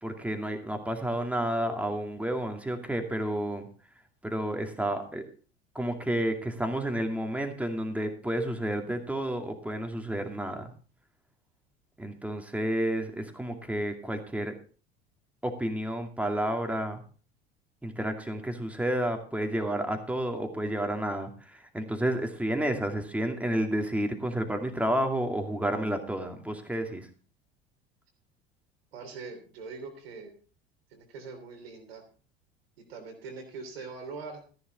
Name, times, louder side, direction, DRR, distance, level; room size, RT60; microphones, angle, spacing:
voice 1, 0.0-3.7 4.2-5.2 5.7-10.7 12.0-14.6 15.4-17.0 17.8-27.1, right 1 dB, 5° right, 4 dB, 2.4 m, -30 dB
voice 2, 28.9-30.4 30.9-32.0 32.8-34.4, right 4 dB, 70° right, 4 dB, 3.4 m, -42 dB
14.0 x 10.5 x 4.0 m, 0.39 s
figure-of-eight pair, 65°, 31 cm